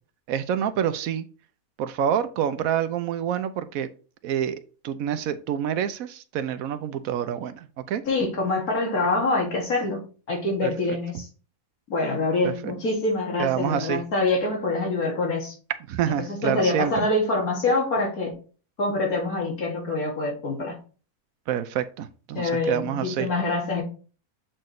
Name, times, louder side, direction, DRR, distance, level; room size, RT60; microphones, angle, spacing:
voice 1, 0.3-1.3 1.8-3.9 4.2-8.0 10.6-10.7 12.4-12.7 13.4-14.0 15.9-17.1 21.5-23.3, right 9 dB, 80° right, 1.0 m, -27 dB
voice 2, 8.1-10.0 10.3-11.3 11.9-15.5 16.1-18.3 18.8-20.8 22.3-23.8, left 2 dB, 85° left, 2.6 m, -25 dB
7.5 x 4.5 x 3.1 m
omnidirectional pair, 1.5 m